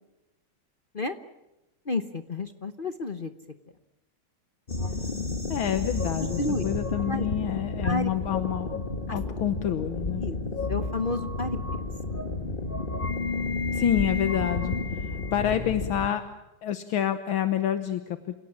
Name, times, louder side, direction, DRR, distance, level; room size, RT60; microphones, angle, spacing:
voice 1, 1.9-3.3 6.2-6.6 7.1-7.3 7.8-8.1 10.2-10.4 10.7-11.6, left 2 dB, 45° left, 9 dB, 0.6 m, -30 dB
sound 1, 4.7-16.1, left 3 dB, 25° left, 1.5 m, -31 dB
voice 2, 5.5-10.3 13.7-16.2 16.6-18.2, left 10 dB, 75° left, 10 dB, 1.8 m, -28 dB
28.0 x 17.5 x 8.6 m, 0.99 s
omnidirectional pair, 2.3 m